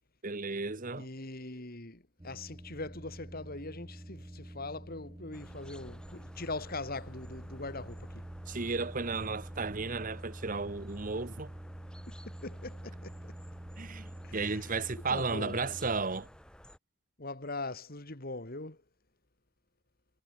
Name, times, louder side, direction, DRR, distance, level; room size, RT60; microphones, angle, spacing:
voice 1, 0.2-1.1 8.5-11.5 13.8-16.3, right 4 dB, 40° right, 1.2 m, -34 dB
voice 2, 0.9-8.2 12.3-13.2 14.2-14.7 15.1-15.9 17.2-18.8, left 2 dB, 45° left, 2.5 m, -41 dB
sound 1, 2.2-16.0, right 1 dB, 15° right, 0.8 m, -46 dB
sound 2, 5.3-16.8, equal, 5° left, 3.6 m, -54 dB
head